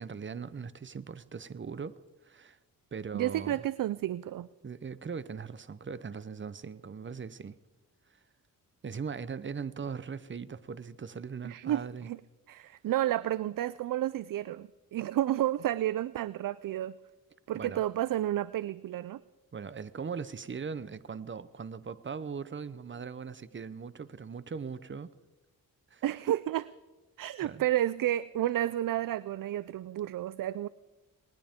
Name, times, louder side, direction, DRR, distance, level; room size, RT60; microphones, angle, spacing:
voice 1, 0.0-2.0 2.2-2.6 2.9-3.7 4.6-7.6 8.8-12.1 17.5-17.8 19.5-25.1 25.9-26.0 27.4-27.6, right 6 dB, 30° right, 16 dB, 0.8 m, -40 dB
voice 2, 3.1-4.5 11.4-12.2 12.5-16.9 17.5-19.2 26.0-26.7 27.2-30.7, right 13 dB, 60° right, 17 dB, 0.5 m, -31 dB
20.0 x 20.0 x 3.6 m, 1.2 s
cardioid pair, 85°, 37 cm